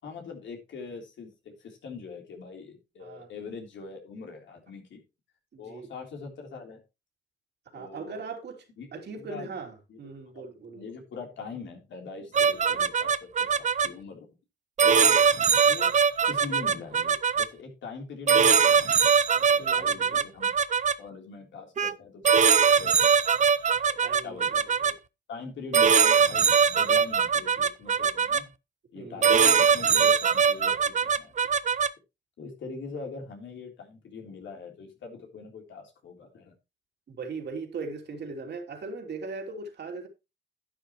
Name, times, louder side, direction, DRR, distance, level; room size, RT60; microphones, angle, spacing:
voice 1, 0.0-5.0 5.6-6.8 7.7-8.2 8.8-9.5 9.9-10.0 10.3-10.5 10.7-14.3 14.8-15.2 15.5-15.9 16.2-18.9 19.5-20.5 21.0-23.2 23.8-25.0 25.3-28.5 28.9-31.3 32.4-36.5, left 4 dB, 85° left, 3.4 m, -42 dB
voice 2, 5.5-5.9 7.7-8.6 8.9-10.9 12.4-12.5 14.9-15.2 19.3-20.2 24.0-24.6 28.9-29.3 37.1-40.1, right 4 dB, 65° right, 3.0 m, -39 dB
sound 1, 12.3-13.9 14.8-17.5 18.3-20.9 21.8-21.9 22.2-24.9 25.7-28.4 29.2-31.9, right 6 dB, 40° right, 0.6 m, -21 dB
11.5 x 10.0 x 3.0 m
wide cardioid pair, 125°, 19 cm